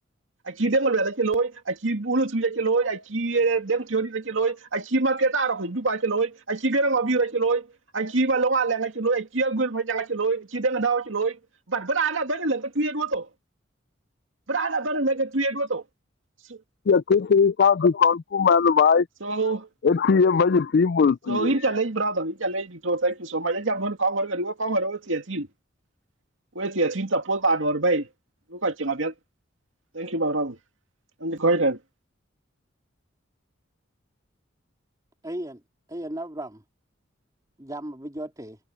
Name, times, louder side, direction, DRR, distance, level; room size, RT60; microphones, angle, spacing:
voice 1, 0.5-7.7 7.9-11.4 11.7-13.3 14.5-15.8 16.5-16.6 19.2-19.7 21.3-25.5 26.6-28.1 28.5-29.1 29.9-30.6 31.2-31.8, right 3 dB, 80° right, 2.3 m, -25 dB
voice 2, 16.9-19.1 19.8-21.6, left 5 dB, 55° left, 0.4 m, -19 dB
voice 3, 35.2-35.6 35.9-36.6 37.6-38.6, right 1 dB, 20° right, 3.2 m, -35 dB
head